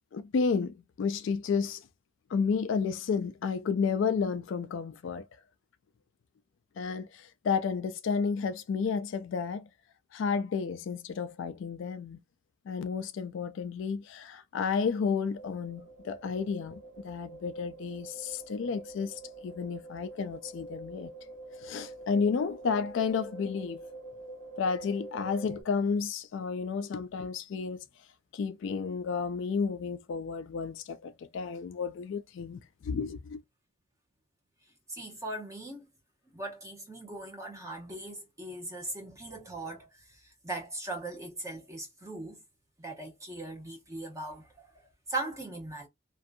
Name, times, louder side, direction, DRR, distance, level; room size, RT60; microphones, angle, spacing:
voice 1, 0.1-1.8 2.3-5.3 6.8-9.7 10.1-12.2 12.7-21.1 21.6-23.8 24.6-27.8 28.3-33.4, left 5 dB, 60° left, 0.3 m, -32 dB
sound 1, 15.4-25.6, right 2 dB, 40° right, 1.2 m, -46 dB
voice 2, 34.9-35.8 36.3-42.4 42.8-44.7 45.1-45.9, right 2 dB, 15° right, 0.7 m, -39 dB
2.6 x 2.2 x 2.5 m
head